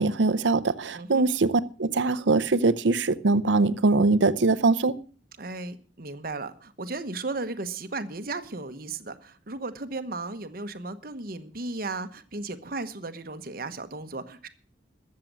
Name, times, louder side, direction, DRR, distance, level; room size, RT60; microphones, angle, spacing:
voice 1, 0.0-5.0, right 3 dB, 90° right, 0.7 m, -22 dB
voice 2, 0.9-1.2 5.4-14.5, right 3 dB, 55° right, 1.1 m, -35 dB
13.5 x 7.6 x 7.4 m
head